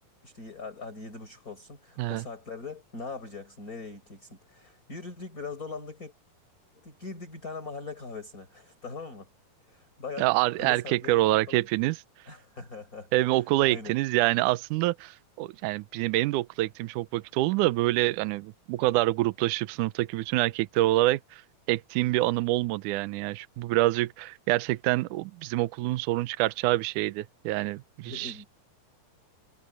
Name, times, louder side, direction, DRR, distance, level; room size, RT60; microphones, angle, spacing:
voice 1, 0.2-6.1 6.8-9.3 9.7-10.3 10.6-11.7 12.3-13.9 28.1-28.5, left 4 dB, 20° left, 5.9 m, -41 dB
voice 2, 10.2-12.0 13.1-21.4 21.7-28.3, right 17 dB, 85° right, 1.8 m, -26 dB
omnidirectional pair, 4.4 m